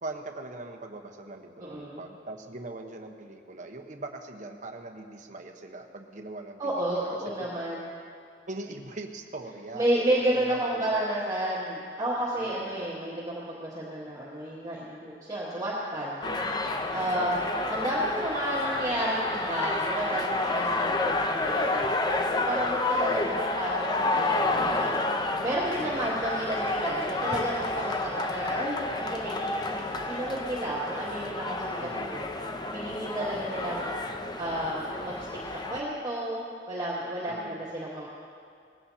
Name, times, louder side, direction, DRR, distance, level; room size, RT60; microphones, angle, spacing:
voice 1, 0.0-7.5 8.5-9.9 10.3-11.1 12.3-12.8 16.2-16.6 17.2-17.5 23.1-23.5 25.8-26.1 31.8-32.2 33.2-33.5 37.3-37.6, right 2 dB, 45° right, 4 dB, 1.1 m, -41 dB
voice 2, 1.6-2.0 6.6-7.9 9.7-16.2 16.9-17.4 17.7-32.3 32.7-33.9 34.4-35.3 35.7-38.1, right 1 dB, 20° right, -8 dB, 2.1 m, -31 dB
sound 1, 16.2-35.8, left 2 dB, 25° left, 0.7 m, -30 dB
20.0 x 16.0 x 2.8 m, 2.3 s
head